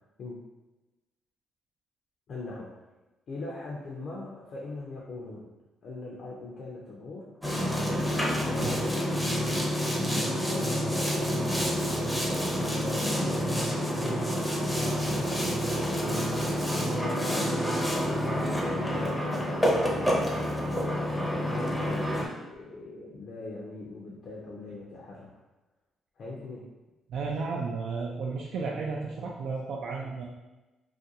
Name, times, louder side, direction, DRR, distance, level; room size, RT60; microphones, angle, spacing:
voice 1, 2.3-2.7 3.3-5.5 5.8-7.3 8.4-11.7 12.8-13.1 13.6-14.3 14.7-16.3 17.0-25.3 26.2-26.7, left 2 dB, 60° left, -4 dB, 0.4 m, -41 dB
Boat Water vehicle, 7.4-22.3, equal, 5° left, 0.6 m, -28 dB
voice 2, 27.1-30.2, right 4 dB, 75° right, -2 dB, 0.3 m, -33 dB
2.4 x 2.2 x 2.7 m, 1.1 s
cardioid pair, 90°, 0 cm